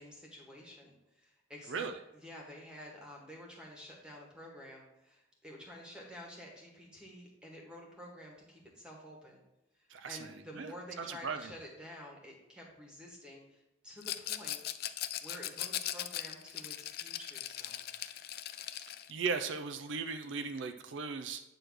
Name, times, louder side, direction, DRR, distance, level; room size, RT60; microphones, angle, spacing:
voice 1, 0.0-1.9 2.2-9.4 10.1-14.6 15.2-18.1, equal, 5° right, -1 dB, 1.6 m, -50 dB
voice 2, 9.9-10.3 10.6-10.7 11.0-11.5 18.6-21.4, right 5 dB, 70° right, 8 dB, 0.5 m, -37 dB
Rattle, 14.0-19.1, left 12 dB, 50° left, 0.4 m, -39 dB
9.0 x 3.1 x 6.3 m, 0.95 s
head